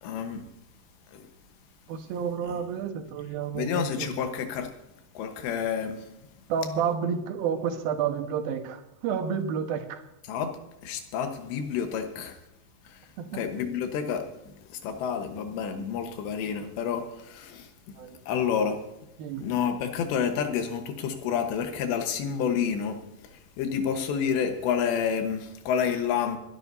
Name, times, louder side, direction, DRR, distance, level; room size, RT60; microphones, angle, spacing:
voice 1, 0.0-0.4 3.5-4.7 5.2-6.0 10.3-10.5 10.8-12.4 12.9-13.0 13.3-14.2 14.8-17.7 18.3-18.8 19.4-23.0 23.6-26.4, left 7 dB, 90° left, 6 dB, 3.5 m, -29 dB
voice 2, 1.9-4.2 6.5-10.0 13.2-13.4 18.0-18.2 19.2-19.5, right 7 dB, 70° right, 5 dB, 2.8 m, -30 dB
26.0 x 11.5 x 2.7 m, 0.89 s
omnidirectional pair, 4.9 m